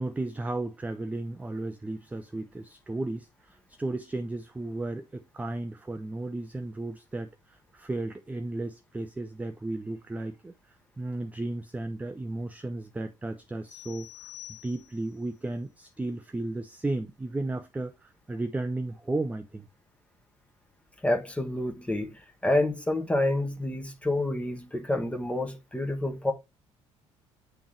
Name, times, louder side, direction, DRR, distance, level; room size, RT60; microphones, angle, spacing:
voice 1, 0.0-10.5 11.0-14.3 14.6-19.7, right 2 dB, 10° right, 0.5 m, -34 dB
sound 1, 13.7-15.2, left 14 dB, 80° left, 1.2 m, -47 dB
voice 2, 21.0-26.3, left 1 dB, 10° left, 1.1 m, -28 dB
8.7 x 3.5 x 3.1 m
figure-of-eight pair, 50°, 16 cm